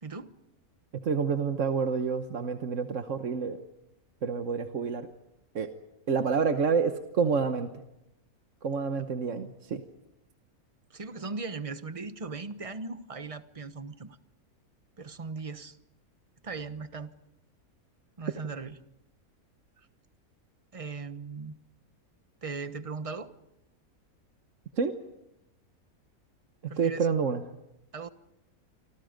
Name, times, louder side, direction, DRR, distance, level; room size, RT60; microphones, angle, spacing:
voice 1, 0.0-0.4 10.9-14.2 15.0-15.8 16.4-17.1 18.2-18.8 20.7-21.6 22.4-23.3 26.7-27.1 27.9-28.1, right 4 dB, 25° right, 10 dB, 1.1 m, -38 dB
voice 2, 1.0-3.6 4.2-5.1 5.5-5.7 6.1-7.7 8.6-9.8 24.8-24.9 26.8-27.4, right 5 dB, 60° right, 7 dB, 1.4 m, -28 dB
28.0 x 25.5 x 5.2 m, 0.88 s
omnidirectional pair, 1.5 m